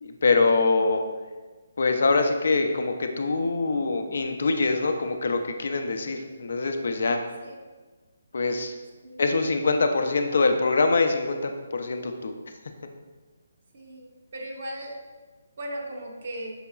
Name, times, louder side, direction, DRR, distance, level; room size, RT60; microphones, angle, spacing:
voice 1, 0.0-1.0 1.8-7.2 8.3-8.7 9.2-12.3, left 3 dB, 65° left, 6 dB, 0.4 m, -24 dB
voice 2, 13.7-14.0 14.3-15.0 15.6-16.5, right 1 dB, 55° right, 0 dB, 0.7 m, -36 dB
5.6 x 2.9 x 2.3 m, 1.3 s
hypercardioid pair, 155°, 0 cm